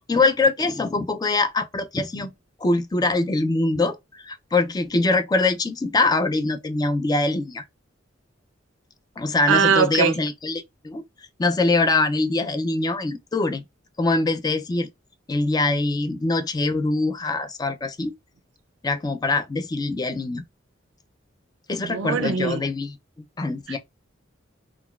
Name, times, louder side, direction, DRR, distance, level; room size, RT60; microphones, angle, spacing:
voice 1, 0.1-2.3 2.6-7.6 9.2-11.0 11.4-13.6 14.0-14.9 15.3-18.1 18.8-20.4 21.7-23.0 23.4-23.8, left 3 dB, 20° left, 0.3 m, -23 dB
voice 2, 9.5-10.1 21.8-22.6 23.7-23.8, right 6 dB, 80° right, 0.4 m, -21 dB
3.9 x 2.2 x 2.3 m
head